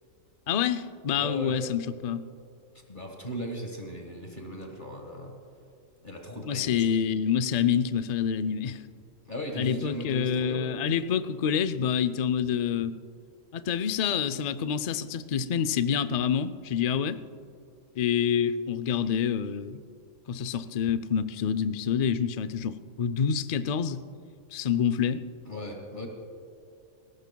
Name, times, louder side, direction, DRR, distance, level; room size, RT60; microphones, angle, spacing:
voice 1, 0.5-2.3 6.5-8.8 9.6-13.0 13.5-17.2 18.0-19.8 20.3-24.0 24.5-25.2, left 8 dB, 70° left, 12 dB, 0.3 m, -27 dB
voice 2, 1.2-1.6 2.9-5.3 6.0-6.8 9.3-10.6 25.4-26.1, equal, 40° left, 2 dB, 1.7 m, -37 dB
20.5 x 17.5 x 2.3 m, 2.4 s
omnidirectional pair, 1.4 m